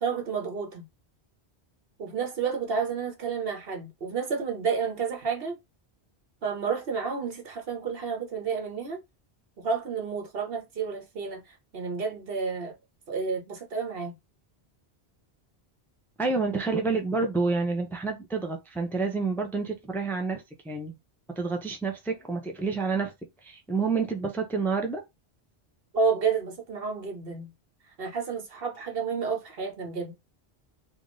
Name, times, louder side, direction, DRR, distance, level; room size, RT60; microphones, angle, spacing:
voice 1, 0.0-0.8 2.0-5.6 6.4-9.0 9.6-12.7 13.1-14.1 25.9-27.5 28.0-30.1, right 5 dB, 65° right, 1.2 m, -30 dB
voice 2, 16.2-20.9 21.4-23.1 23.4-25.0, right 4 dB, ahead, 0.6 m, -28 dB
3.5 x 2.6 x 3.8 m
omnidirectional pair, 1.1 m